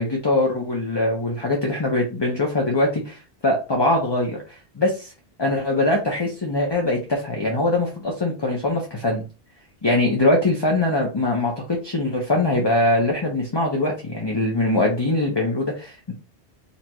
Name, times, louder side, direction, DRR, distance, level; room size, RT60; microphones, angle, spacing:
voice 1, 0.0-3.2 3.4-4.4 4.8-5.1 5.4-9.2 9.8-16.1, left 2 dB, 25° left, 0 dB, 0.7 m, -22 dB
4.5 x 4.0 x 2.3 m, 0.32 s
omnidirectional pair, 1.1 m